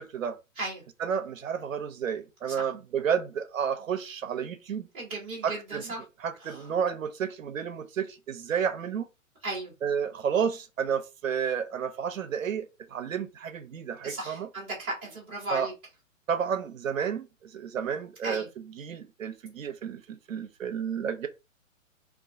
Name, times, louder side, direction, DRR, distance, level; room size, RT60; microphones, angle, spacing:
voice 1, 0.0-0.4 1.0-4.9 5.4-5.8 6.2-9.1 9.8-14.5 15.5-15.7 16.3-21.3, right 7 dB, 75° right, 0.5 m, -31 dB
voice 2, 4.9-6.0 6.4-6.7 9.4-9.7 14.0-15.7 18.2-18.5, right 2 dB, 10° right, 0.4 m, -36 dB
2.4 x 2.2 x 2.4 m
figure-of-eight pair, 120°, 40 cm